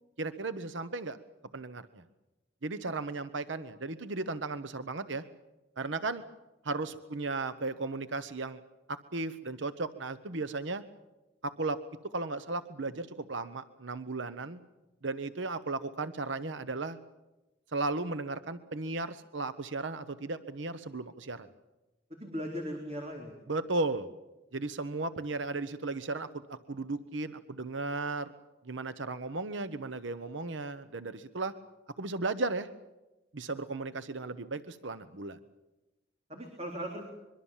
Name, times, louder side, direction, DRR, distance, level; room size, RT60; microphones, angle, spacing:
voice 1, 0.2-1.2 1.5-2.0 2.6-5.2 5.8-6.2 6.6-8.6 8.9-10.8 11.4-11.8 12.1-14.6 15.0-17.0 17.7-21.5 23.5-24.1 24.5-28.3 28.6-31.5 32.0-32.7 33.3-35.4, right 3 dB, 70° right, 12 dB, 1.0 m, -35 dB
voice 2, 22.1-23.3 36.3-37.1, equal, 30° right, 1 dB, 3.6 m, -38 dB
24.5 x 23.5 x 7.4 m, 1.1 s
head